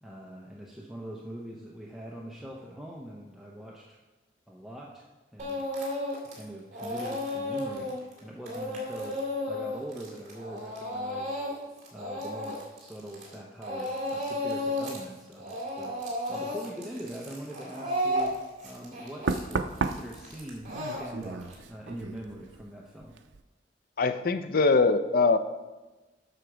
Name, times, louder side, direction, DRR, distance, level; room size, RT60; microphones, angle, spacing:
voice 1, 0.0-4.0 4.5-5.1 5.3-5.7 6.3-7.9 8.2-9.2 9.5-11.4 11.9-23.1, right 1 dB, 5° right, -3 dB, 0.7 m, -43 dB
Speech / Crying sobbing, 5.4-6.4 6.7-13.4 13.6-15.0 15.3-21.5, left 1 dB, 45° right, 2.2 m, -33 dB
Knock, 18.2-18.4 19.3-22.7 23.0-23.4, right 4 dB, 80° right, 0.5 m, -34 dB
voice 2, 24.0-25.4, left 4 dB, 55° left, 10 dB, 0.5 m, -22 dB
7.8 x 6.5 x 4.9 m, 1.2 s
head